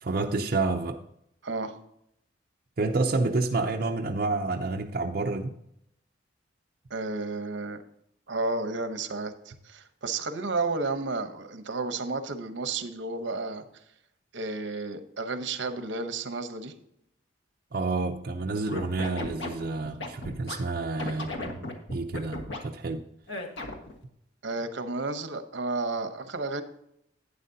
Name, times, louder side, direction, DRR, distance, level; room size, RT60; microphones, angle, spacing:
voice 1, 0.0-1.0 2.8-5.5 17.7-21.7 21.9-23.0, right 3 dB, 50° right, 1 dB, 0.6 m, -29 dB
voice 2, 1.4-1.8 6.9-7.8 8.3-13.6 14.3-16.7 24.4-26.6, right 3 dB, 70° right, 9 dB, 0.9 m, -32 dB
Scratching (performance technique), 18.6-20.6 21.0-22.6 23.3-23.9, left 2 dB, 70° left, 1.5 m, -35 dB
11.5 x 9.0 x 2.8 m, 0.76 s
head